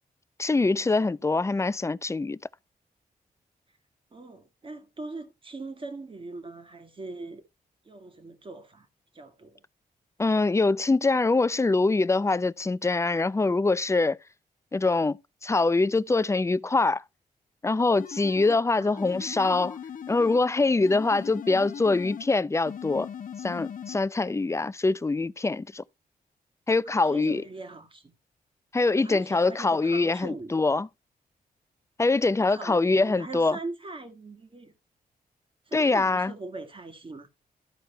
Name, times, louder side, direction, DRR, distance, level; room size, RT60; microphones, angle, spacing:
voice 1, 0.4-2.4 10.2-14.2 14.7-17.0 17.6-19.8 20.1-23.1 23.4-25.8 26.7-27.4 28.7-30.9 32.0-33.6 35.7-36.3, left 3 dB, 20° left, 0.4 m, -24 dB
voice 2, 4.1-7.4 7.9-8.9 9.1-9.6 18.8-19.1 26.9-28.2 29.0-30.6 32.5-34.7 35.7-37.3, right 3 dB, 35° right, 1.8 m, -41 dB
sound 1, 18.0-18.6 19.0-20.5 20.8-22.3 22.7-24.0, left 8 dB, 65° left, 0.8 m, -39 dB
12.5 x 4.6 x 4.5 m
cardioid pair, 75°, 16 cm